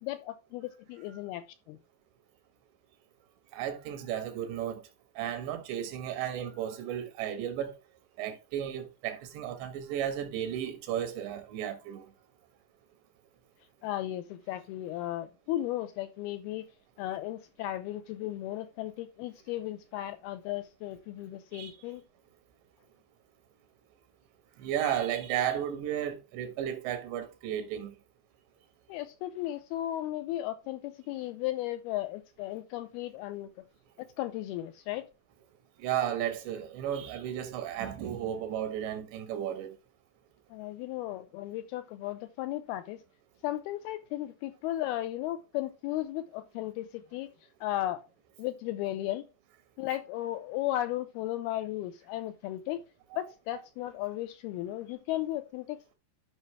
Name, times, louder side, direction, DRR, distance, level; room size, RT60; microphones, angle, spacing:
voice 1, 0.0-1.8 13.8-16.7 17.0-22.0 28.9-33.5 34.0-35.1 40.5-43.0 43.4-47.3 47.6-48.0 48.4-49.2 49.8-52.8 53.1-55.9, left 14 dB, 80° left, 2.3 m, -35 dB
voice 2, 3.5-4.8 5.2-7.7 8.2-12.1 21.5-21.8 24.6-27.9 35.8-39.8 53.1-53.2 53.5-53.6, right 10 dB, 85° right, 3.6 m, -34 dB
13.0 x 5.5 x 3.2 m
omnidirectional pair, 4.9 m